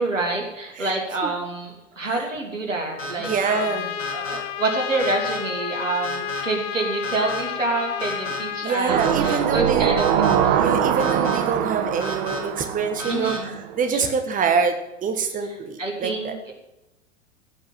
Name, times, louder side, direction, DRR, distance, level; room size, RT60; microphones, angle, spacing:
voice 1, 0.0-10.6 13.0-13.6 13.9-14.1 15.5-16.5, right 2 dB, 80° right, 1 dB, 2.9 m, -27 dB
sound 1, 3.0-3.4 4.0-4.4 5.0-5.4 6.0-6.4 7.0-7.4 8.0-8.4 9.0-9.4 10.0-10.4 11.0-11.4 12.0-12.4 13.0-13.4, equal, 85° left, 5.4 m, -32 dB
voice 2, 3.2-3.9 8.6-9.9 10.5-14.7 15.0-16.3, right 5 dB, 20° right, 6 dB, 1.4 m, -25 dB
Trumpet, 3.4-8.8, left 10 dB, 40° left, 1.1 m, -31 dB
sound 2, 8.9-13.8 14.1-14.2, right 9 dB, 45° right, 1.2 m, -23 dB
16.5 x 5.5 x 7.5 m, 0.95 s
figure-of-eight pair, 95°, 37 cm